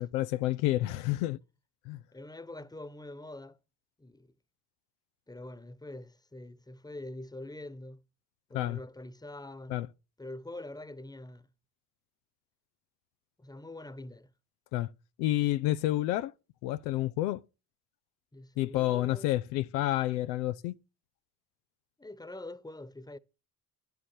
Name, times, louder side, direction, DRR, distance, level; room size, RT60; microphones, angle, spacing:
voice 1, 0.0-1.4 1.9-2.0 8.5-8.8 9.7-9.9 14.7-14.9 15.2-16.3 16.6-17.4 18.6-20.8, left 15 dB, 85° left, 0.6 m, -29 dB
voice 2, 2.1-3.6 4.0-4.3 5.3-8.0 8.5-9.8 10.2-11.5 13.4-14.3 18.3-19.3 22.0-23.2, left 1 dB, 10° left, 1.1 m, -44 dB
11.0 x 6.9 x 9.3 m
hypercardioid pair, 45°, 47 cm